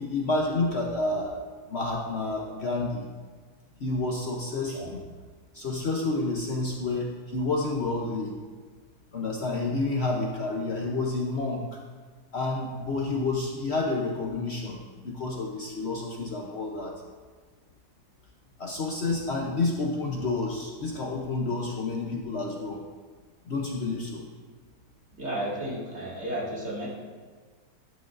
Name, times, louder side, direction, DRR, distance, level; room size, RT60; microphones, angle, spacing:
voice 1, 0.0-1.4 1.7-3.1 3.8-5.0 5.5-8.4 9.1-11.7 12.3-17.0 18.6-22.8 23.5-24.3, left 3 dB, 50° left, 0 dB, 0.9 m, -29 dB
voice 2, 25.2-26.9, right 1 dB, 40° right, -7 dB, 2.6 m, -33 dB
12.5 x 8.5 x 2.6 m, 1.5 s
omnidirectional pair, 1.8 m